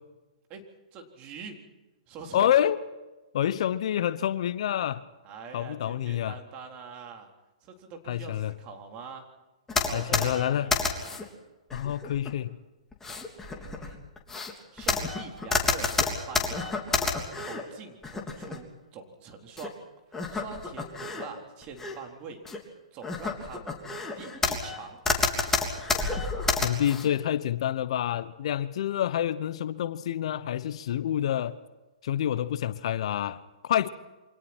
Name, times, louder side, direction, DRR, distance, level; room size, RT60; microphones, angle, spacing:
voice 1, 0.9-1.6 2.1-2.6 5.2-7.3 7.6-9.2 9.8-10.9 13.5-14.1 14.7-16.8 17.4-19.8 20.3-22.4 22.9-23.8 24.2-25.0, right 5 dB, 35° right, 3 dB, 3.9 m, -44 dB
voice 2, 2.3-2.8 3.3-5.0 5.5-6.4 8.1-8.5 9.9-10.7 11.7-12.6 26.6-31.6 32.0-33.9, left 10 dB, 60° left, 14 dB, 1.0 m, -27 dB
sound 1, 9.7-11.2 11.7-12.3 12.9-17.6 18.0-18.6 19.6-19.7 20.1-21.3 21.6-22.0 22.5-22.6 23.0-24.8 25.1-27.1, left 4 dB, 10° left, 3.4 m, -29 dB
28.5 x 25.0 x 4.5 m, 1.1 s
hypercardioid pair, 120°, 4 cm